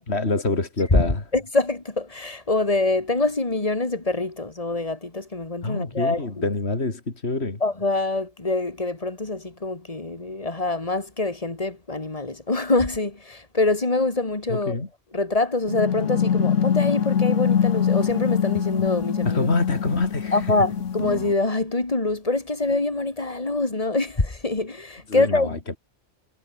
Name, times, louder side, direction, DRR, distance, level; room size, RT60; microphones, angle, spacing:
voice 1, 0.1-1.2 5.6-7.6 14.5-14.9 19.2-20.5 25.1-25.8, left 3 dB, 60° left, 3.5 m, -26 dB
voice 2, 1.3-6.3 7.6-14.8 15.1-19.5 20.3-25.5, left 2 dB, 30° left, 2.5 m, -25 dB
sound 1, 15.7-21.3, left 8 dB, 80° left, 1.5 m, -23 dB
omnidirectional pair, 1.2 m